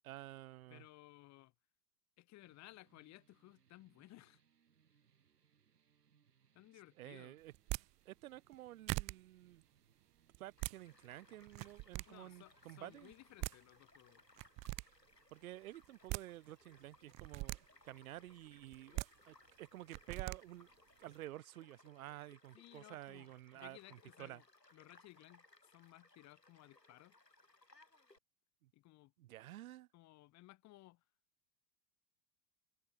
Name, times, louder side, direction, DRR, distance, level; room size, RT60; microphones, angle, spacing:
voice 1, 0.0-0.8 7.0-7.5 8.1-9.6 10.4-13.1 15.3-20.7 21.0-24.4 28.6-28.7 29.2-29.9, right 15 dB, 60° right, 2.0 m, -51 dB
voice 2, 0.7-1.5 2.2-4.4 6.5-7.4 12.1-14.2 18.9-19.0 22.5-24.5 24.7-27.1 28.7-29.1 29.9-31.0, left 17 dB, 35° left, 2.1 m, -60 dB
sound 1, 2.4-13.6, right 7 dB, 75° right, 5.7 m, -75 dB
sound 2, 7.5-7.8 8.5-8.6 8.9-9.1 10.3-10.7 11.5-12.0 13.1-13.2 13.4-13.5 14.4-14.8 15.8-16.2 17.1-17.6 18.7-19.1 19.9-20.4, right 23 dB, 15° right, 0.3 m, -40 dB
Child speech kid speaking / Stream / Car passing by, 10.6-28.2, left 2 dB, 90° left, 4.8 m, -67 dB
figure-of-eight pair, 90°, 48 cm